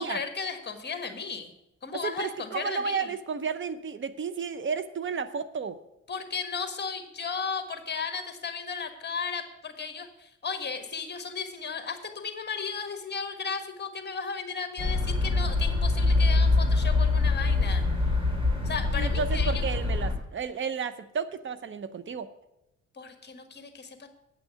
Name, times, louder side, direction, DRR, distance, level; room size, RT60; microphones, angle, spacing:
voice 1, 0.0-1.5 1.8-3.1 6.1-17.8 18.6-19.6 23.0-24.1, left 5 dB, 35° left, 7 dB, 1.5 m, -35 dB
voice 2, 1.9-5.8 18.9-22.3, right 6 dB, 40° right, 13 dB, 0.7 m, -32 dB
sound 1, 14.8-20.2, left 3 dB, 15° right, 2.8 m, -24 dB
9.1 x 6.3 x 8.3 m, 0.88 s
cardioid pair, 90°, 30 cm